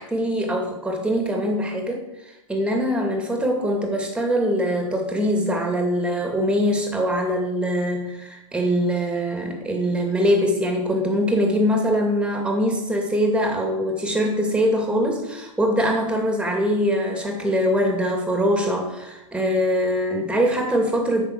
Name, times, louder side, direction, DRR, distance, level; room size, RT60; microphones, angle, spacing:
voice 1, 0.0-2.0 2.5-21.2, equal, 5° right, 2 dB, 2.3 m, -23 dB
9.1 x 6.5 x 6.4 m, 0.97 s
hypercardioid pair, 130°, 17 cm